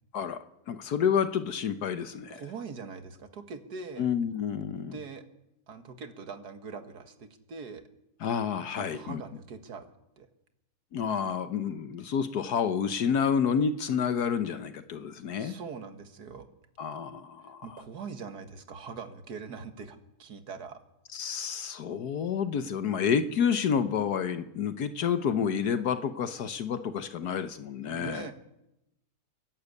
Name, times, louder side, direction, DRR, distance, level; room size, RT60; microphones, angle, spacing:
voice 1, 0.7-2.4 4.0-4.9 8.2-9.2 10.9-15.5 16.8-17.7 21.1-28.3, left 7 dB, 70° left, 11 dB, 1.5 m, -29 dB
voice 2, 2.3-4.1 4.8-5.2 5.7-7.8 8.8-9.9 10.2-10.3 15.4-16.5 17.6-20.8 27.9-28.3, right 5 dB, 70° right, 9 dB, 2.2 m, -42 dB
29.0 x 12.0 x 8.4 m, 0.89 s
omnidirectional pair, 1.8 m